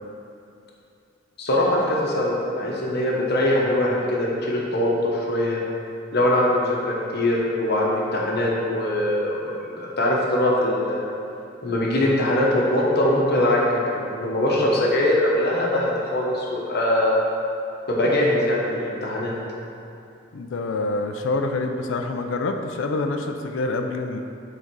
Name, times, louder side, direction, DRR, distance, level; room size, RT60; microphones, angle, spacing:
voice 1, 1.4-5.6 6.1-11.1 11.6-17.2 17.9-19.3, left 1 dB, 55° left, -3 dB, 1.0 m, -22 dB
voice 2, 20.3-24.2, left 2 dB, 70° left, 5 dB, 0.4 m, -26 dB
6.3 x 3.9 x 4.6 m, 2.6 s
head